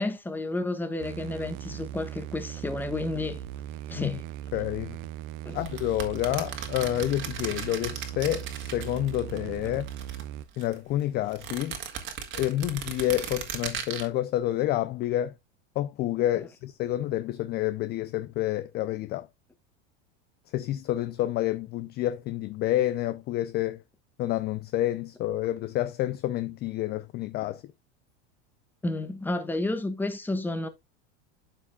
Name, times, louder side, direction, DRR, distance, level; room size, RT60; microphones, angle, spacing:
voice 1, 0.0-3.4 3.9-4.2 5.4-5.6 28.8-30.7, left 2 dB, 5° left, 1.0 m, -31 dB
sound 1, 1.0-10.4, right 11 dB, 60° right, 0.8 m, -39 dB
voice 2, 4.5-5.0 5.5-9.9 10.6-11.8 12.3-15.3 15.8-19.3 20.5-23.8 24.2-27.6, left 14 dB, 30° left, 0.4 m, -29 dB
sound 2, 5.6-9.4 9.6-10.8 11.3-14.1, right 8 dB, 40° right, 1.8 m, -37 dB
12.5 x 4.9 x 2.2 m
supercardioid pair, 135°, 32 cm